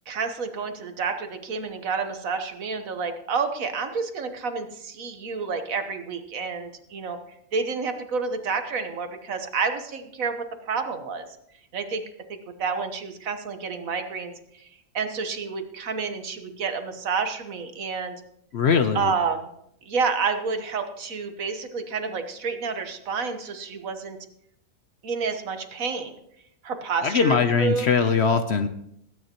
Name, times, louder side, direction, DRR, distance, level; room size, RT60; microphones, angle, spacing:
voice 1, 0.1-7.2 7.5-11.2 11.7-12.0 12.3-14.3 14.9-18.1 18.9-19.5 19.8-24.2 25.0-26.1 26.6-27.9, right 5 dB, 65° right, 7 dB, 1.5 m, -29 dB
voice 2, 18.5-19.1 27.0-28.7, left 6 dB, 55° left, 9 dB, 0.8 m, -21 dB
20.5 x 9.4 x 3.0 m, 0.74 s
omnidirectional pair, 1.5 m